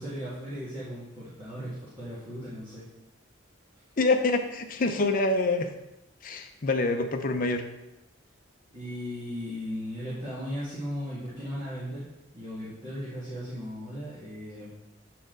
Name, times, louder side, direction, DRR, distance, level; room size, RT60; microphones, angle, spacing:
voice 1, 0.0-2.9 8.7-12.0 12.3-14.7, equal, 25° right, -11 dB, 1.8 m, -37 dB
voice 2, 4.0-5.7 6.2-7.6, left 3 dB, 45° left, 5 dB, 0.6 m, -26 dB
8.3 x 4.2 x 3.8 m, 0.94 s
head